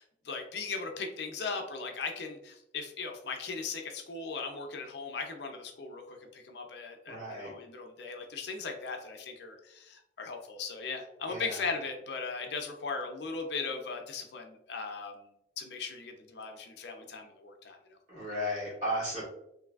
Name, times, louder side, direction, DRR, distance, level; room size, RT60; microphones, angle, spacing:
voice 1, 0.0-15.2 15.6-17.8, left 4 dB, 65° left, 4 dB, 0.5 m, -38 dB
voice 2, 7.1-7.5 11.3-11.6 18.1-19.2, equal, 40° right, -6 dB, 1.5 m, -34 dB
3.2 x 2.6 x 2.3 m, 0.79 s
head